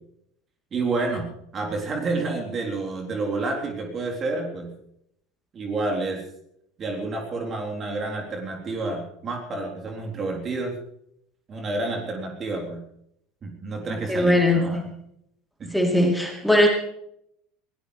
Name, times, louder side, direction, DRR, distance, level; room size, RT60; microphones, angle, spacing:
voice 1, 0.7-1.3 1.5-4.7 5.5-6.2 6.8-10.8 11.5-12.8 13.4-14.8 15.6-15.7, right 3 dB, 30° right, 2 dB, 3.9 m, -29 dB
voice 2, 14.1-14.8 15.7-16.7, left 1 dB, ahead, 1 dB, 3.4 m, -20 dB
22.0 x 18.0 x 3.4 m, 0.74 s
figure-of-eight pair, 70°, 0 cm